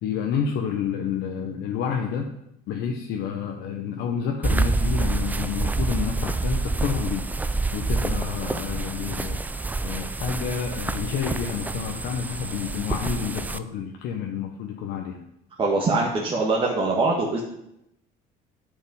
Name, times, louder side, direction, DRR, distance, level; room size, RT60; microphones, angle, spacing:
voice 1, 0.0-2.4 2.7-7.2 7.7-9.4 9.8-15.2, left 7 dB, 70° left, 1 dB, 1.1 m, -29 dB
sound 1, 4.4-13.6, right 3 dB, 10° right, 0.4 m, -27 dB
voice 2, 15.6-17.4, right 3 dB, 30° right, -3 dB, 1.6 m, -23 dB
10.5 x 5.3 x 5.5 m, 0.80 s
cardioid pair, 130°, 18 cm